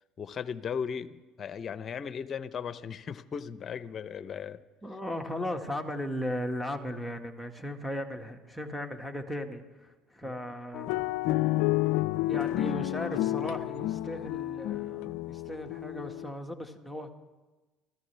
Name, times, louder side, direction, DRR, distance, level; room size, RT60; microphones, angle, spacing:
voice 1, 0.2-4.6 10.2-10.4, left 7 dB, 40° left, 14 dB, 0.9 m, -37 dB
voice 2, 4.8-11.2 12.3-17.1, left 1 dB, 5° left, 3 dB, 1.9 m, -37 dB
sound 1, 10.7-16.3, left 16 dB, 70° left, 0.4 m, -30 dB
28.0 x 14.5 x 3.5 m, 1.2 s
hypercardioid pair, 65°, 0 cm